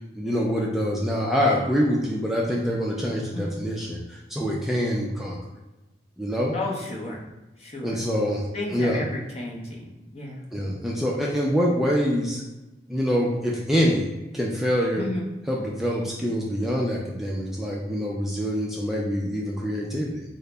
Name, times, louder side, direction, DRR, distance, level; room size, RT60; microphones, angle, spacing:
voice 1, 0.2-5.4 6.2-6.6 7.8-8.4 8.7-9.0 10.5-12.4 12.9-14.1 14.3-15.1 15.5-20.2, equal, ahead, -4 dB, 0.3 m, -25 dB
voice 2, 6.5-7.2 7.6-8.0 8.5-10.5 15.0-15.3, left 1 dB, 35° left, -1 dB, 0.6 m, -33 dB
3.8 x 2.0 x 3.2 m, 1.0 s
head